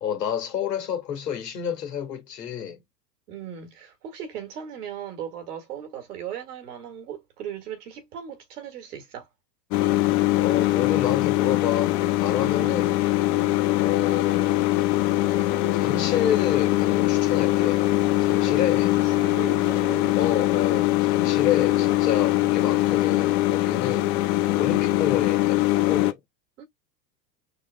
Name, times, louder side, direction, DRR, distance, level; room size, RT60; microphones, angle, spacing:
voice 1, 0.0-2.8 10.3-12.9 13.8-14.7 15.7-17.9 18.2-18.9 20.2-24.2 24.6-26.2, left 9 dB, 70° left, 1.9 m, -29 dB
voice 2, 3.3-9.3 12.4-12.9 13.3-13.6 18.4-20.2 24.6-24.9 26.6-26.7, right 8 dB, 65° right, 2.1 m, -38 dB
sound 1, 9.7-26.1, left 16 dB, 30° left, 0.4 m, -22 dB
6.5 x 3.0 x 2.3 m
figure-of-eight pair, 85°, 50 cm